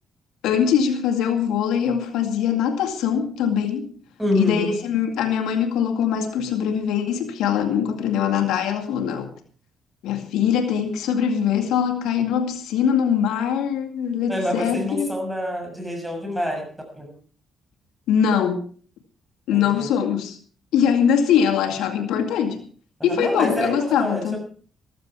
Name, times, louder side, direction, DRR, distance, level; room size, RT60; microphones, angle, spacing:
voice 1, 0.4-3.9 4.4-9.3 10.0-15.2 18.1-18.6 19.5-20.4 20.7-22.6 23.0-24.4, left 8 dB, 85° left, 4 dB, 2.2 m, -22 dB
voice 2, 4.2-4.8 14.3-16.7 16.9-17.1 19.5-19.9 23.0-24.4, left 1 dB, 5° right, 4 dB, 6.5 m, -26 dB
14.5 x 14.5 x 4.7 m, 0.44 s
cardioid pair, 90°, 0 cm